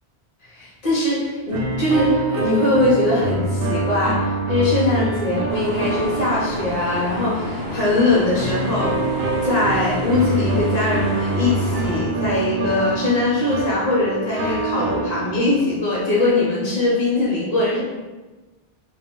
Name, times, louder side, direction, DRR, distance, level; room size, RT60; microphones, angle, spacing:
voice 1, 0.4-9.0 9.4-17.8, left 2 dB, 40° left, -6 dB, 0.9 m, -21 dB
sound 1, 1.5-7.3 8.4-15.8, right 2 dB, 70° right, 0.8 m, -25 dB
sound 2, 5.5-12.0, left 1 dB, 40° right, 0.5 m, -30 dB
2.4 x 2.1 x 3.7 m, 1.2 s
omnidirectional pair, 1.1 m